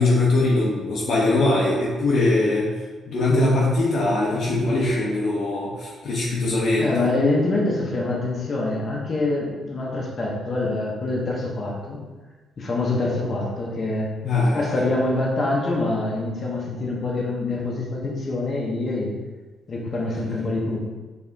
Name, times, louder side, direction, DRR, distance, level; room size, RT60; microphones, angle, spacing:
voice 1, 0.0-2.7 3.1-7.1 14.2-14.6, left 2 dB, 65° left, -5 dB, 0.8 m, -21 dB
voice 2, 6.8-12.0 12.6-14.1 14.5-19.1 19.7-20.8, left 2 dB, 40° left, -2 dB, 1.0 m, -25 dB
4.8 x 3.4 x 2.8 m, 1.3 s
cardioid pair, 90°, 0 cm